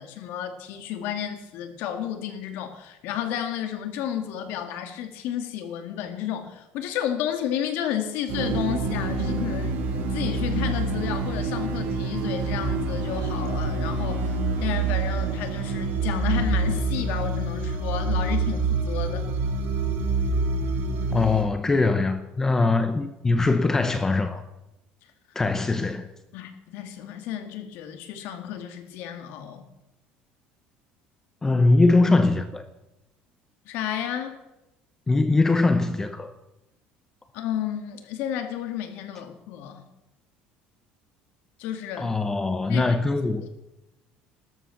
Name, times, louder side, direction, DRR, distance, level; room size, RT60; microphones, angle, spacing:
voice 1, 0.0-9.8 10.1-19.3 25.0-25.1 26.3-29.6 33.7-34.4 37.3-39.8 41.6-42.1 42.7-43.0, left 10 dB, 70° left, 2.4 m, -32 dB
sound 1, 8.3-21.4, right 3 dB, 60° right, 2.6 m, -26 dB
voice 2, 21.1-24.4 25.3-26.1 31.4-32.6 35.1-36.3 42.0-43.5, left 3 dB, 15° left, 0.8 m, -22 dB
14.0 x 13.0 x 7.1 m
cardioid pair, 150°, 4 cm